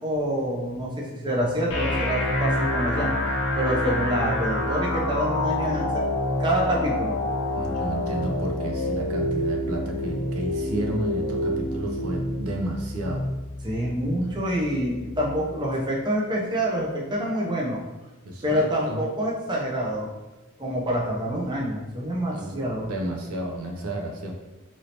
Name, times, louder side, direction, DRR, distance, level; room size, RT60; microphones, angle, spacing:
voice 1, 0.0-6.0 6.4-7.2 13.6-17.8 18.4-20.1 20.6-22.9, equal, 20° right, -3 dB, 0.5 m, -27 dB
sound 1, 1.7-15.7, left 1 dB, 60° left, 0.6 m, -28 dB
voice 2, 7.5-13.3 14.2-14.4 18.3-19.0 22.3-22.5 22.9-24.4, right 1 dB, 75° right, 2 dB, 0.5 m, -32 dB
3.1 x 2.7 x 2.8 m, 1.1 s
head